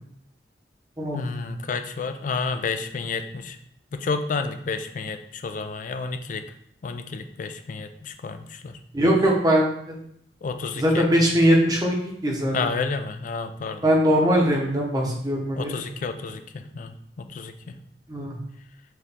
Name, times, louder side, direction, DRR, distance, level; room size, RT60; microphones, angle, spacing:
voice 1, 1.1-3.6 3.9-6.4 6.8-8.8 10.4-11.0 12.5-13.9 15.6-17.8, left 4 dB, 45° left, 8 dB, 0.4 m, -30 dB
voice 2, 8.9-10.0 10.8-12.0 12.2-12.7 13.8-15.7 18.1-18.3, equal, 20° right, -1 dB, 0.9 m, -21 dB
4.5 x 3.0 x 3.5 m, 0.71 s
head